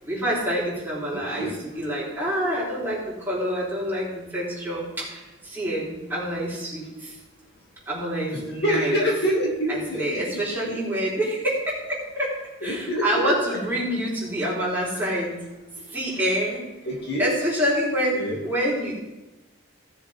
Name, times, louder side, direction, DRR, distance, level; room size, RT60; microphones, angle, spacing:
voice 1, 0.0-7.2 7.9-9.0 9.7-12.4 12.6-15.4 15.9-16.7 17.2-19.0, equal, 10° right, -8 dB, 4.1 m, -27 dB
voice 2, 1.1-1.5 8.3-10.2 12.6-13.3 16.8-17.3 18.1-18.4, equal, 50° left, -3 dB, 2.5 m, -26 dB
17.5 x 7.4 x 3.7 m, 1.1 s
head